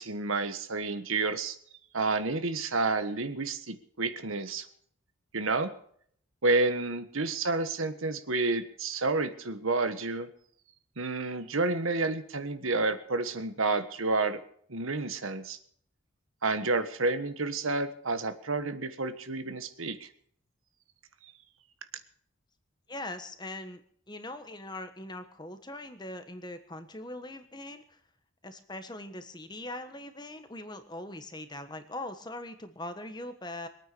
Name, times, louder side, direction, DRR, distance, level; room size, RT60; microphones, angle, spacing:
voice 1, 0.0-1.6 1.9-4.7 5.3-5.7 6.4-10.3 11.0-14.4 14.7-15.6 16.4-20.1 21.2-21.3, right 3 dB, 75° right, 10 dB, 1.5 m, -30 dB
voice 2, 22.9-23.8 24.1-28.0 28.4-33.7, left 1 dB, 20° left, 9 dB, 1.3 m, -41 dB
23.0 x 9.1 x 6.9 m, 0.62 s
head